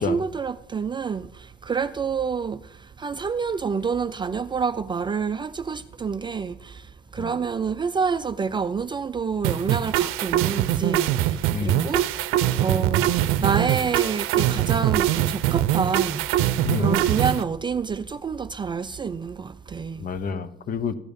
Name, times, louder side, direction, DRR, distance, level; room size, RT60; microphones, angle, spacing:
voice 1, 0.0-12.3 12.6-20.1, right 5 dB, 20° right, 0.4 m, -28 dB
sound 1, 9.4-17.4, right 13 dB, 85° right, 0.6 m, -23 dB
voice 2, 11.5-11.8 16.6-17.0 20.0-21.0, left 6 dB, 45° left, 1.1 m, -28 dB
14.5 x 10.5 x 5.3 m
cardioid pair, 120°, 21 cm